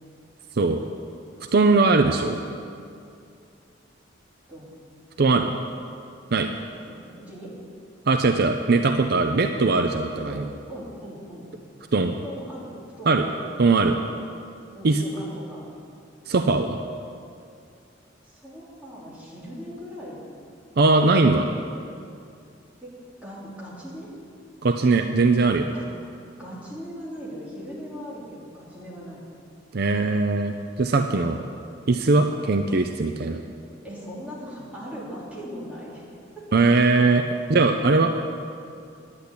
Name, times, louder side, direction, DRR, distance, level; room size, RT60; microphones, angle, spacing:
voice 1, 1.5-2.4 5.2-5.5 6.3-6.5 8.1-10.4 11.9-12.2 13.1-13.2 13.6-14.0 14.8-15.0 16.3-16.8 20.8-21.5 24.6-25.7 29.7-31.4 31.9-33.4 36.5-38.1, right 3 dB, 60° right, 6 dB, 0.6 m, -20 dB
voice 2, 6.8-7.5 10.3-11.5 12.2-13.4 14.0-14.2 14.7-15.6 18.2-20.3 22.8-22.9 23.2-24.1 25.7-25.9 26.4-29.2 33.8-36.0 36.4-36.5, equal, 10° right, -7 dB, 3.5 m, -39 dB
10.5 x 9.7 x 8.6 m, 2.4 s
head